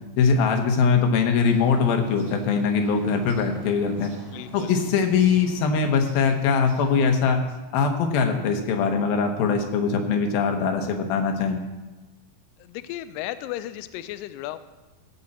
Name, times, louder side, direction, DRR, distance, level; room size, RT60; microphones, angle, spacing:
voice 1, 0.2-4.1 4.5-7.4 7.7-11.6, left 5 dB, 75° left, 4 dB, 2.9 m, -22 dB
sound 1, 1.3-7.1, right 1 dB, 35° right, 4.8 m, -44 dB
voice 2, 4.3-4.8 12.6-14.6, left 14 dB, 90° left, 12 dB, 1.9 m, -35 dB
16.5 x 7.9 x 4.2 m, 1.2 s
omnidirectional pair, 4.5 m